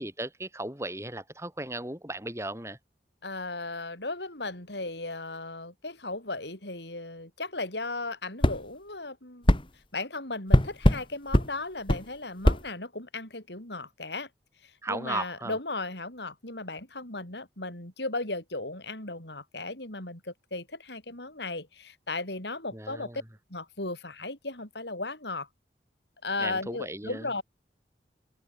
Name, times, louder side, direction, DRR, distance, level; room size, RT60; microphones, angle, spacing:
voice 1, 0.0-2.8 14.8-15.6 22.7-23.2 26.4-27.4, right 2 dB, 15° right, 7.4 m, -36 dB
voice 2, 3.2-9.5 9.9-14.3 14.9-23.1 23.5-25.5 26.2-27.4, left 2 dB, 75° left, 7.9 m, -36 dB
sound 1, 8.4-8.6 9.5-9.6 10.5-11.0 11.3-11.5 11.9-12.0 12.4-12.6, equal, 30° left, 2.0 m, -20 dB
head